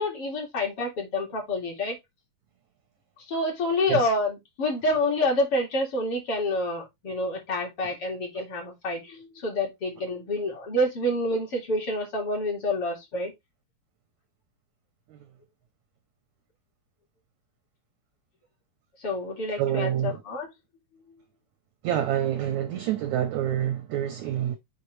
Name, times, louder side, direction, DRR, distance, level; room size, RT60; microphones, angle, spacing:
voice 1, 0.0-2.0 3.3-13.3 19.0-20.5, left 1 dB, 45° left, 2.5 m, -28 dB
voice 2, 19.6-20.2 21.8-24.6, right 11 dB, 75° right, 1.7 m, -27 dB
6.3 x 5.3 x 3.2 m
omnidirectional pair, 4.2 m